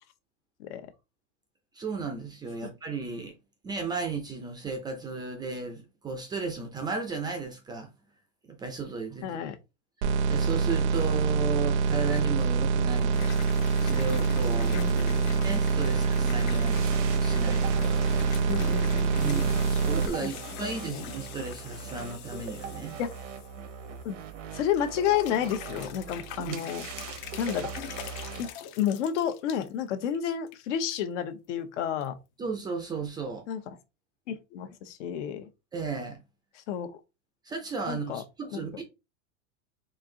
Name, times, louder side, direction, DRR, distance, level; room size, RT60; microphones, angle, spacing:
voice 1, 1.7-3.3 3.6-7.9 8.5-9.4 10.3-13.4 13.8-14.8 15.4-17.9 19.2-23.0 26.5-26.6 32.4-33.5 35.7-36.2 37.4-38.8, right 5 dB, 10° right, 0.4 m, -34 dB
voice 2, 9.2-9.6 14.7-15.3 18.5-19.4 20.2-20.3 20.9-21.0 23.0-23.1 24.0-24.2 24.5-26.8 27.4-27.7 28.4-28.5 28.8-32.1 33.5-33.6 34.3-35.4 36.7-36.9 37.9-38.2 38.5-38.8, left 9 dB, 70° left, 0.9 m, -31 dB
sound 1, 10.0-20.1, right 5 dB, 65° right, 0.6 m, -25 dB
sound 2, 13.1-24.4 24.7-29.7 30.1-30.6 30.9-31.0 32.0-32.1, left 11 dB, 40° left, 0.5 m, -43 dB
sound 3, 16.7-28.5, right 6 dB, 90° right, 1.0 m, -41 dB
4.4 x 2.5 x 3.7 m
supercardioid pair, 150°, 37 cm